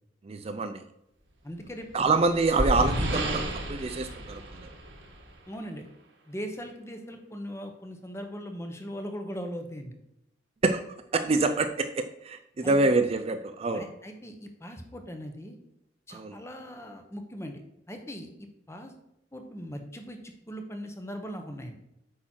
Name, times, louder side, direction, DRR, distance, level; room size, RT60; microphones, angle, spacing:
voice 1, 0.2-0.8 1.9-4.7 10.6-10.8 11.1-13.9 16.1-16.4, right 3 dB, 35° right, 8 dB, 0.4 m, -26 dB
voice 2, 1.4-2.2 5.5-5.9 6.3-10.0 12.6-12.9 13.7-15.6 16.1-17.6 17.9-18.3 18.7-18.9 19.3-21.7, equal, 15° left, 5 dB, 1.0 m, -39 dB
sound 1, 1.8-5.4, right 1 dB, 70° right, 1.5 m, -31 dB
8.6 x 6.0 x 4.5 m, 0.84 s
head